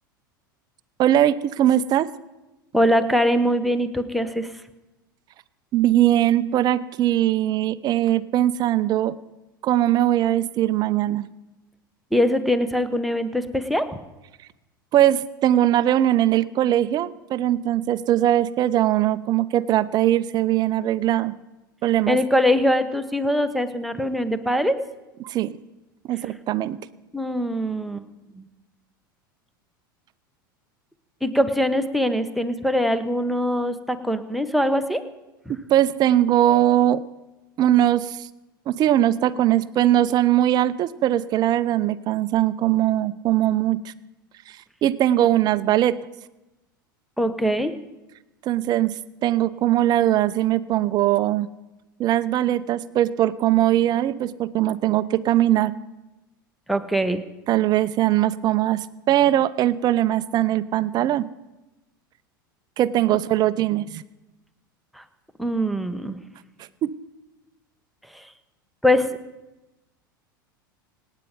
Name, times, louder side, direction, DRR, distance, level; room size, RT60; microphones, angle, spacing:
voice 1, 1.0-2.1 5.7-9.1 9.6-11.3 14.9-21.3 21.8-22.2 25.2-25.5 26.1-26.8 35.7-37.0 37.6-38.3 38.7-43.9 44.8-46.0 48.4-48.9 49.2-51.5 52.0-55.7 57.5-58.8 59.1-61.2 62.8-64.0 66.8-66.9, right 12 dB, 35° right, 16 dB, 0.7 m, -20 dB
voice 2, 2.7-4.5 12.1-13.9 22.1-24.8 27.1-28.0 28.4-28.5 31.2-35.0 47.2-47.7 56.7-57.2 64.9-65.0 65.4-66.2 68.1-68.3 68.8-69.1, equal, ahead, 7 dB, 1.3 m, -22 dB
26.0 x 9.4 x 5.2 m, 1.0 s
figure-of-eight pair, 80°, 11 cm